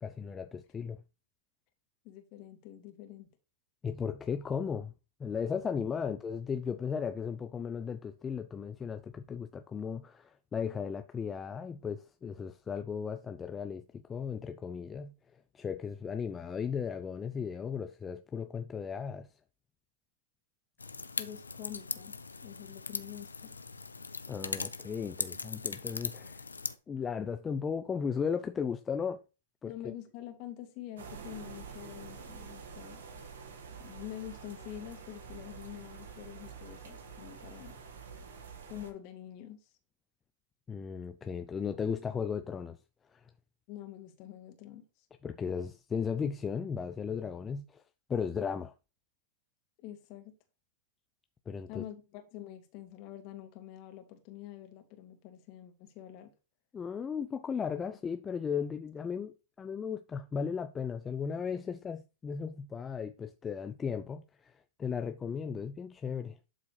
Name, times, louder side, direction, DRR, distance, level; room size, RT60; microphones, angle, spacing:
voice 1, 0.0-1.0 3.8-4.9 5.2-19.3 24.3-26.4 26.9-29.2 29.6-29.9 40.7-42.8 43.1-43.2 45.2-47.8 48.1-48.7 51.5-51.8 56.7-64.5 64.8-66.4, left 6 dB, 20° left, 0.5 m, -36 dB
voice 2, 2.0-3.3 21.2-22.1 22.4-23.6 29.6-33.0 33.8-37.8 38.7-39.7 43.7-45.1 49.8-50.3 51.7-56.3 57.7-57.9 58.6-58.7, left 12 dB, 45° left, 2.1 m, -46 dB
sound 1, 20.8-26.7, left 4 dB, 90° left, 0.6 m, -39 dB
sound 2, 31.0-38.9, right 6 dB, 70° right, 1.7 m, -47 dB
11.5 x 4.0 x 3.3 m
hypercardioid pair, 100°, 0 cm